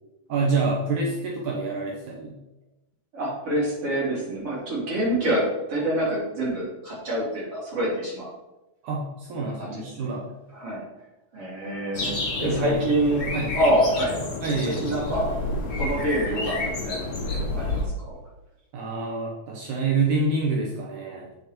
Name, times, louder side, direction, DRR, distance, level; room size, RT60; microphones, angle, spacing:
voice 1, 0.3-2.4 8.8-10.2 12.4-12.8 13.3-13.6 14.4-15.1 18.7-21.3, right 3 dB, 70° right, -2 dB, 2.5 m, -27 dB
voice 2, 3.1-8.3 9.4-10.1 10.5-10.8 11.3-14.1 14.8-15.3 15.7-17.9, right 1 dB, 45° right, -7 dB, 4.4 m, -26 dB
sound 1, 11.9-17.8, left 2 dB, 40° left, 2.4 m, -29 dB
8.9 x 6.8 x 4.4 m, 0.99 s
omnidirectional pair, 3.8 m